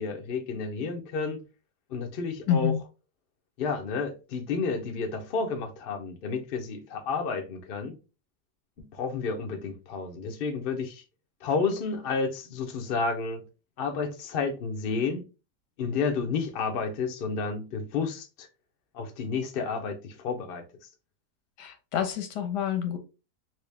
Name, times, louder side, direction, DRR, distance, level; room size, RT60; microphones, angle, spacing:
voice 1, 0.0-1.4 1.9-2.7 3.6-7.9 8.8-11.0 11.4-13.4 13.8-15.2 15.8-18.5 18.9-20.6, left 4 dB, 55° left, 0.6 m, -31 dB
voice 2, 2.5-2.8 21.6-23.0, left 9 dB, 90° left, 1.4 m, -27 dB
3.0 x 2.8 x 3.3 m
omnidirectional pair, 1.8 m